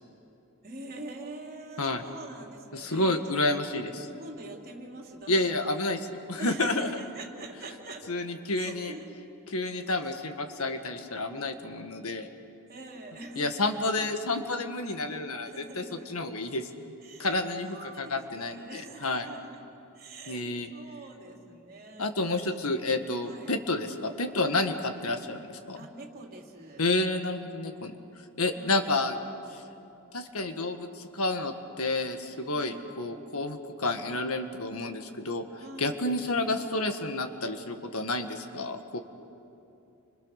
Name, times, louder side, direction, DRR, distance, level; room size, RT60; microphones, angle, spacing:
voice 1, 0.6-3.4 3.7-3.9 4.2-5.6 6.4-8.1 8.5-9.1 9.5-9.6 12.7-13.7 15.1-15.2 15.4-16.1 17.0-17.3 17.6-19.6 19.9-22.1 23.2-23.5 25.7-26.9 28.5-29.0 32.5-32.9 35.5-36.0, right 2 dB, 45° right, 0 dB, 3.3 m, -44 dB
voice 2, 2.7-3.9 5.3-6.9 8.1-8.9 9.5-12.3 13.4-16.7 17.2-19.3 20.3-20.7 22.0-25.8 26.8-27.9 28.4-29.2 29.5-29.6 30.1-35.4 35.8-39.0, left 2 dB, 70° left, 6 dB, 1.8 m, -30 dB
29.5 x 25.5 x 6.6 m, 2.8 s
head